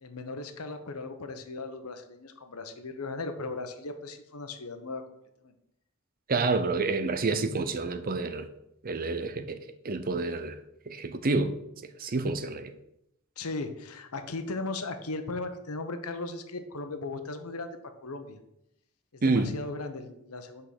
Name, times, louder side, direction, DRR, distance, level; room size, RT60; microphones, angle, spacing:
voice 1, 0.0-5.0 5.4-5.5 13.4-18.4 19.1-20.7, left 3 dB, 90° left, 1.0 m, -37 dB
voice 2, 6.3-8.5 8.8-9.6 9.8-10.6 10.9-11.5 12.0-12.7 19.2-19.5, right 3 dB, 40° right, 0.6 m, -28 dB
5.9 x 5.7 x 6.6 m
head